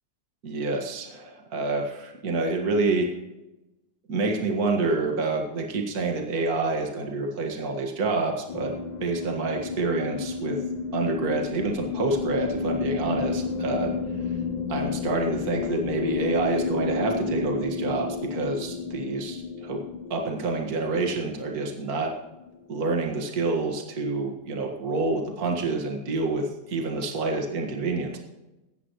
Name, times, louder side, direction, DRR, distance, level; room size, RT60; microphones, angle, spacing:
voice 1, 0.4-3.1 4.1-8.7 9.0-10.6 10.9-13.9 14.7-19.8 20.1-22.1 22.7-28.2, right 3 dB, 55° right, 2 dB, 2.2 m, -27 dB
sound 1, 8.5-23.1, left 5 dB, 75° left, 1.5 m, -31 dB
18.0 x 13.5 x 3.1 m, 1.0 s
omnidirectional pair, 2.0 m